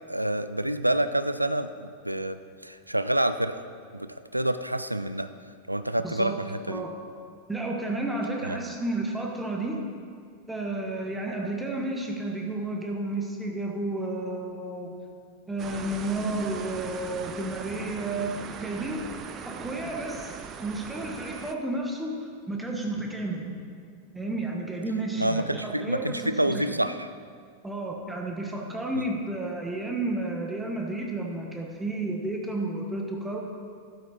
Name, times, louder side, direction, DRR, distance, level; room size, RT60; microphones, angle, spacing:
voice 1, 0.1-3.6 3.9-5.3 5.7-6.9 8.4-8.6 25.2-27.1 28.9-29.0, right 1 dB, 85° right, 11 dB, 0.4 m, -28 dB
voice 2, 6.0-7.0 7.5-9.8 10.5-14.9 15.5-18.3 18.6-19.1 19.4-23.6 24.1-26.8 27.6-33.4, right 2 dB, 10° right, 0 dB, 1.2 m, -32 dB
sound 1, 15.6-21.5, right 7 dB, 30° right, 0.6 m, -40 dB
12.0 x 8.0 x 4.3 m, 2.2 s
figure-of-eight pair, 90°, 0 cm